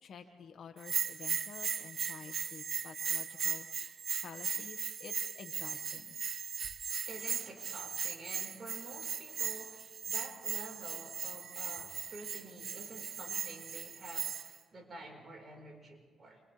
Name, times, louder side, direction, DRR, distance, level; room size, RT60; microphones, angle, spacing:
voice 1, 0.0-3.9 4.2-6.2, left 6 dB, 60° left, 5 dB, 2.0 m, -50 dB
Bell, 0.8-14.6, right 7 dB, 55° right, 0.8 m, -38 dB
voice 2, 7.1-16.4, right 2 dB, 35° right, 0 dB, 5.2 m, -49 dB
29.5 x 25.5 x 3.6 m, 1.4 s
cardioid pair, 90°, 0 cm